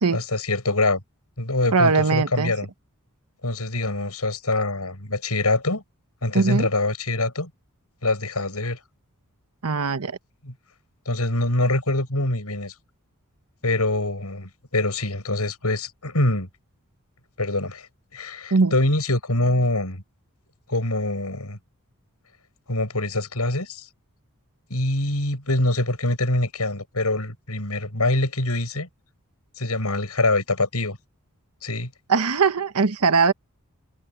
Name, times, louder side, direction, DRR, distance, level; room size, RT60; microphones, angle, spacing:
voice 1, 0.1-1.0 1.4-2.7 3.4-5.8 6.2-7.5 8.0-8.8 10.4-10.5 11.1-12.7 13.6-16.5 17.4-20.0 20.7-21.6 22.7-23.9 24.7-28.9 29.6-31.0 31.6-31.9, left 2 dB, 80° left, 7.1 m, -24 dB
voice 2, 1.7-2.5 6.3-6.7 9.6-10.2 18.5-18.7 32.1-33.3, right 4 dB, 85° right, 1.0 m, -20 dB
head